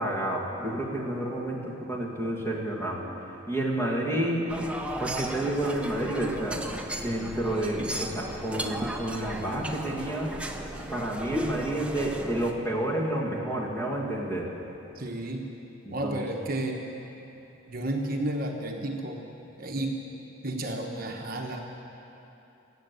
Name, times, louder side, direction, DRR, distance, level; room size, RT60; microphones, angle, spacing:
voice 1, 0.0-3.1 3.5-4.5 5.0-6.6 7.0-10.3 10.9-14.5 15.9-16.3, right 1 dB, 15° left, -3 dB, 1.9 m, -30 dB
sound 1, 4.5-12.5, right 1 dB, 5° right, 0.6 m, -35 dB
voice 2, 15.0-15.5 15.9-16.8 17.7-19.2 19.6-20.0 20.4-21.6, right 1 dB, 45° right, 1 dB, 1.1 m, -32 dB
18.5 x 7.8 x 8.1 m, 2.9 s
head